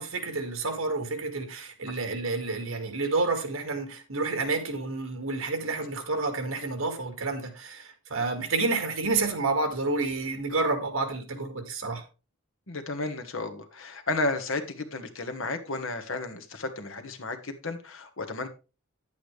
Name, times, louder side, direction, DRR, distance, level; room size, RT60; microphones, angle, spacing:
voice 1, 0.0-12.0, right 3 dB, 80° right, 2.0 m, -29 dB
voice 2, 12.7-18.5, left 2 dB, 65° left, 1.5 m, -33 dB
10.0 x 8.5 x 3.3 m
head